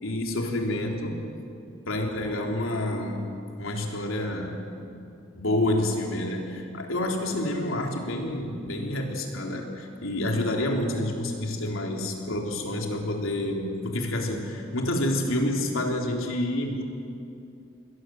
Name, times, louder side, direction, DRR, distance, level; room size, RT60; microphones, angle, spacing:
voice 1, 0.0-1.3 1.6-3.3 3.6-4.6 5.3-16.8, left 1 dB, 80° left, 1 dB, 3.7 m, -28 dB
28.5 x 21.5 x 7.8 m, 2.6 s
head